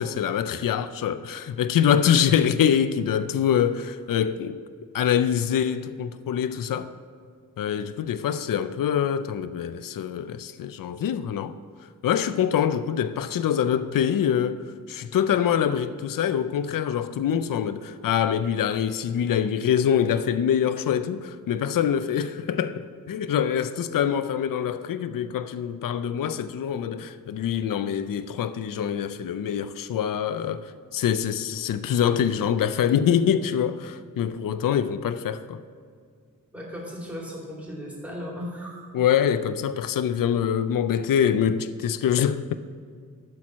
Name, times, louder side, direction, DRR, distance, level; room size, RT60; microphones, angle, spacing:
voice 1, 0.0-4.6 4.9-6.9 7.6-11.5 12.0-35.6 38.9-42.5, left 8 dB, 75° left, 0.5 m, -25 dB
voice 2, 36.5-38.8, equal, 5° right, 2.8 m, -36 dB
12.0 x 4.5 x 7.3 m
wide cardioid pair, 100°, 34 cm